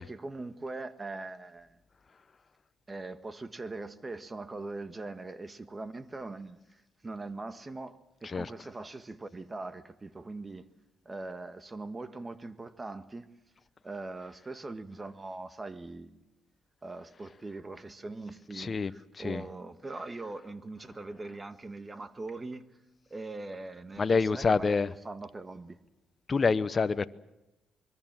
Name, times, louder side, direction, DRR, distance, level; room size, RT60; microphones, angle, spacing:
voice 1, 0.0-1.8 2.9-10.7 11.0-13.3 13.8-16.2 16.8-22.7 23.1-24.8 25.0-25.8, right 2 dB, 25° right, 1.5 m, -41 dB
voice 2, 18.6-18.9 19.2-19.4 24.0-24.9 26.3-27.1, left 4 dB, 35° left, 0.8 m, -27 dB
25.5 x 22.0 x 7.5 m
cardioid pair, 90°, 0 cm